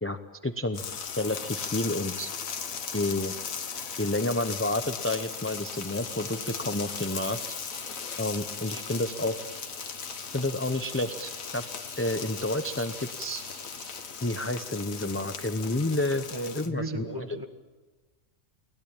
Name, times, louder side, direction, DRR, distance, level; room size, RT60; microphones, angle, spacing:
voice 1, 0.0-0.8 1.2-2.3 2.9-3.3 4.0-7.4 8.2-9.4 10.3-11.6 12.0-13.4 14.2-16.3 16.5-17.3, left 2 dB, 15° left, 8 dB, 0.7 m, -30 dB
sound 1, 0.7-16.7, left 6 dB, 80° left, 1.7 m, -38 dB
sound 2, 5.4-14.1, right 1 dB, 65° right, 5.8 m, -49 dB
voice 2, 16.3-17.5, right 2 dB, 15° right, 6 dB, 1.6 m, -35 dB
30.0 x 20.0 x 8.9 m, 1.3 s
omnidirectional pair, 1.4 m